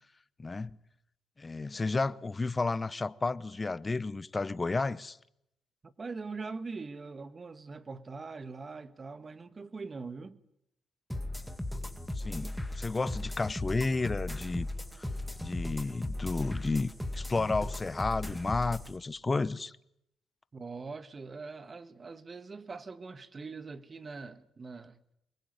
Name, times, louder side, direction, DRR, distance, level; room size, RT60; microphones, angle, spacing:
voice 1, 0.4-0.8 1.4-5.2 12.2-14.7 15.4-19.7, left 3 dB, 25° left, 0.9 m, -32 dB
voice 2, 5.8-10.4 20.5-25.0, right 4 dB, 35° right, 1.6 m, -42 dB
sound 1, 11.1-18.9, left 1 dB, ahead, 2.3 m, -37 dB
24.0 x 21.0 x 9.5 m
cardioid pair, 90°, 0 cm